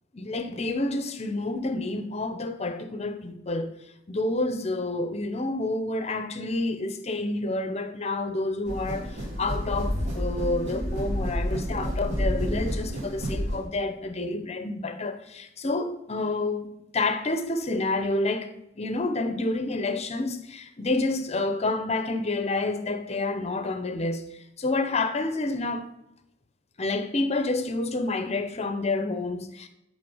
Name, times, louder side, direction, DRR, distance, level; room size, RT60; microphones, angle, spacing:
voice 1, 0.1-3.7 4.1-16.7 16.9-25.9 26.8-29.7, left 2 dB, 35° left, 0.8 m, -29 dB
sound 1, 8.7-13.6, equal, 40° right, 3.2 m, -29 dB
10.5 x 3.8 x 5.5 m
head